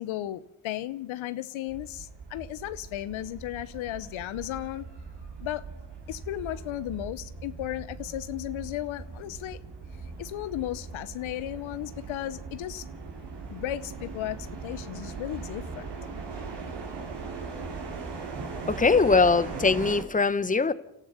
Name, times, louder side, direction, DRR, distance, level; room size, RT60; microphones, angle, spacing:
voice 1, 0.0-4.9 5.4-5.6 6.1-9.6 10.2-12.9 13.5-14.4 14.6-15.9, left 14 dB, 75° left, 0.9 m, -35 dB
sound 1, 1.7-20.0, right 4 dB, 60° right, 4.0 m, -40 dB
voice 2, 18.7-20.7, left 4 dB, 15° left, 1.1 m, -22 dB
29.5 x 13.5 x 6.9 m
supercardioid pair, 50°, 48 cm